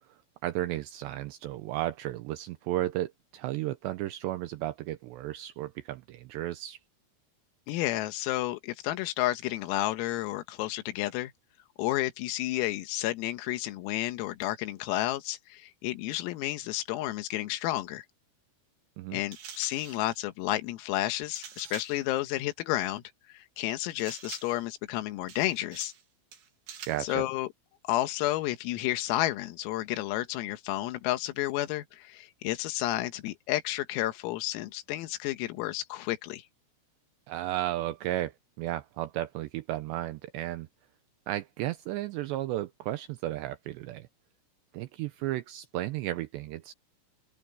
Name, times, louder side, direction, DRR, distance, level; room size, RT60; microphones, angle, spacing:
voice 1, 0.4-6.8 19.0-19.2 26.9-27.2 37.3-38.3 38.6-40.7 41.3-44.1 44.7-46.7, right 15 dB, 90° right, 2.4 m, -34 dB
voice 2, 7.7-11.3 11.8-18.1 19.1-23.0 23.3-25.9 27.0-27.5 27.9-36.4, left 16 dB, 85° left, 4.1 m, -31 dB
sound 1, 19.3-20.1 21.4-22.1 24.0-24.7 25.3-26.0 26.3-27.1, right 7 dB, 55° right, 4.7 m, -46 dB
open air
omnidirectional pair, 6.0 m